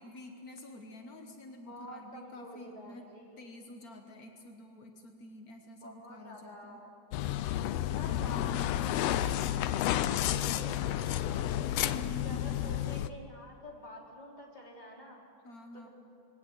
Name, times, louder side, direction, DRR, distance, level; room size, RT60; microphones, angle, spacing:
voice 1, 0.0-3.0 3.4-6.8 7.9-8.7 11.9-12.8 15.4-15.9, left 2 dB, 70° left, 4 dB, 0.8 m, -48 dB
voice 2, 1.7-3.5 5.8-6.9 7.7-9.5 9.8-15.2 15.7-15.9, equal, 15° left, -2 dB, 3.3 m, -49 dB
sound 1, 7.1-13.1, left 12 dB, 90° left, 1.4 m, -31 dB
21.5 x 17.0 x 8.0 m, 2.9 s
omnidirectional pair, 3.6 m